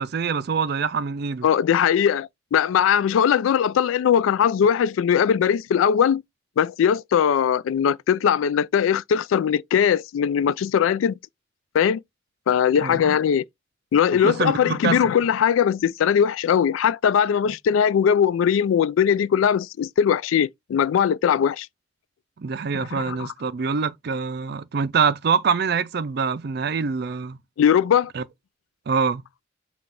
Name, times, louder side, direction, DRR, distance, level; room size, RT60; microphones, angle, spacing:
voice 1, 0.0-1.5 12.8-13.0 14.1-15.1 22.4-27.4 28.1-28.2 28.9-29.2, right 5 dB, 55° right, 0.4 m, -25 dB
voice 2, 1.4-6.2 6.6-11.1 11.7-12.0 12.5-13.4 13.9-21.7 22.7-23.3 27.6-28.1, left 8 dB, 90° left, 0.3 m, -20 dB
5.7 x 2.4 x 3.7 m
head